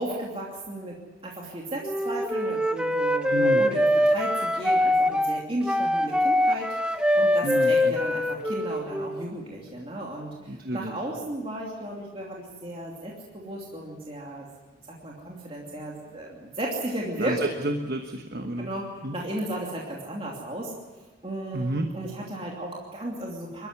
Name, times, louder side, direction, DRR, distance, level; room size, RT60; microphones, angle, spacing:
voice 1, 0.0-14.5 14.9-17.4 18.6-20.7 21.2-23.7, right 1 dB, 30° right, -3 dB, 2.8 m, -35 dB
Wind instrument woodwind instrument, 1.8-9.3, left 1 dB, 5° right, 0.8 m, -23 dB
voice 2, 3.3-3.6 7.4-8.0 10.5-10.9 17.2-18.7 19.0-19.1 21.5-21.9, right 1 dB, 50° right, 4 dB, 1.3 m, -30 dB
22.5 x 14.0 x 9.6 m, 1.2 s
head